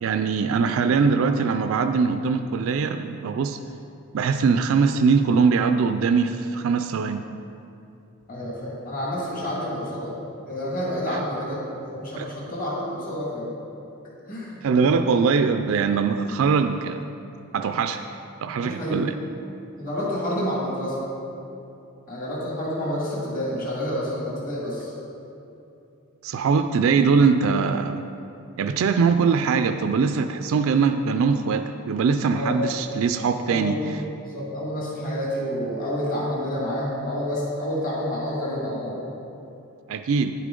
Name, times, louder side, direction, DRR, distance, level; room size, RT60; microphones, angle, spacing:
voice 1, 0.0-3.6 4.1-7.3 11.1-11.2 12.2-12.3 14.6-17.0 17.5-18.0 18.4-19.1 26.2-28.0 28.6-33.8 39.9-40.3, right 5 dB, 70° right, 8 dB, 0.3 m, -22 dB
voice 2, 8.3-10.1 10.5-13.5 14.3-14.9 18.6-19.0 19.8-21.1 22.1-24.9 32.3-32.6 33.5-33.8 34.2-39.0, equal, 40° left, -5 dB, 1.9 m, -29 dB
9.7 x 8.4 x 3.8 m, 2.8 s
head